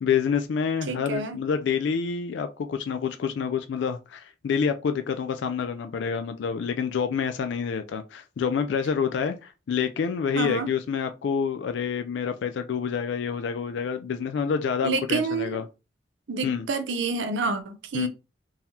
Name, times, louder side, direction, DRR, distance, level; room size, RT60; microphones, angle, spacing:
voice 1, 0.0-15.6 16.4-16.6 17.9-18.1, left 6 dB, 70° left, 0.3 m, -27 dB
voice 2, 0.9-1.4 10.3-10.7 14.8-15.6 16.3-18.1, right 4 dB, 70° right, 0.5 m, -28 dB
3.8 x 2.7 x 2.9 m
head